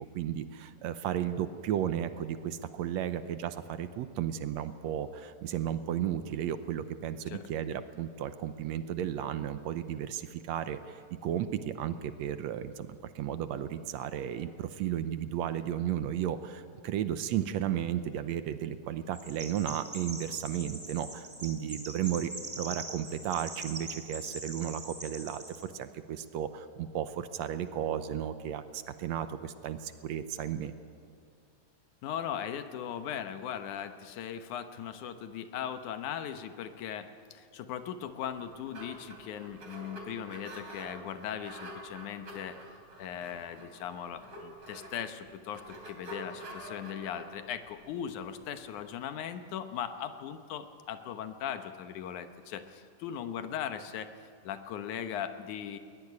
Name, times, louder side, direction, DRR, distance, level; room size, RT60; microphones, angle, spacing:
voice 1, 0.0-22.3 22.6-30.7, right 10 dB, 75° right, 11 dB, 1.9 m, -34 dB
Chirp tweet, 19.1-25.7, right 1 dB, 10° right, 3.3 m, -42 dB
voice 2, 32.0-42.6 43.0-54.1 54.4-55.8, left 9 dB, 85° left, 9 dB, 2.6 m, -39 dB
sound 1, 38.2-48.9, right 1 dB, 45° right, 3.9 m, -47 dB
20.5 x 20.0 x 9.6 m, 2.4 s
omnidirectional pair, 3.4 m